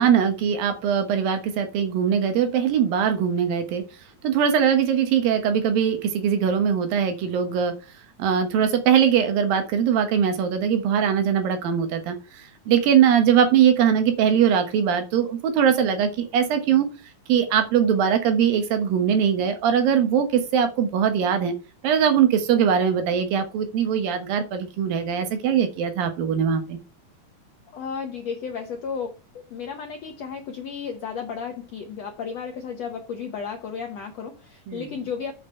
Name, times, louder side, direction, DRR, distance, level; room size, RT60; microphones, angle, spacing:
voice 1, 0.0-3.8 4.2-7.7 8.2-16.9 17.3-21.5 21.8-26.8 34.7-34.9, right 8 dB, 70° right, 8 dB, 2.8 m, -21 dB
voice 2, 27.7-29.1 29.5-35.3, left 6 dB, 75° left, 4 dB, 1.5 m, -33 dB
7.3 x 6.9 x 4.4 m, 0.32 s
omnidirectional pair, 4.4 m